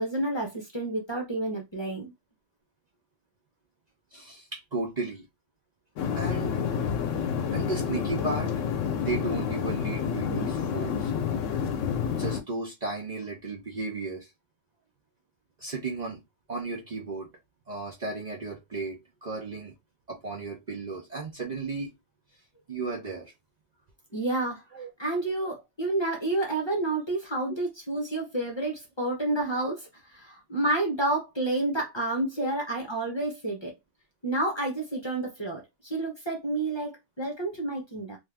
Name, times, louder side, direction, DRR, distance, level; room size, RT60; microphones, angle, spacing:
voice 1, 0.0-2.1 24.1-24.6 25.0-33.7 34.2-38.2, right 2 dB, 25° left, 0.7 m, -29 dB
voice 2, 4.1-5.2 6.1-6.6 7.5-8.5 9.0-11.1 12.1-14.3 15.6-16.2 16.5-17.3 17.7-19.7 20.1-21.9 22.7-23.3 24.7-24.9 32.4-32.5, right 3 dB, 45° right, 0.6 m, -34 dB
sound 1, 6.0-12.4, left 7 dB, 90° left, 0.9 m, -29 dB
2.6 x 2.4 x 3.2 m
omnidirectional pair, 1.2 m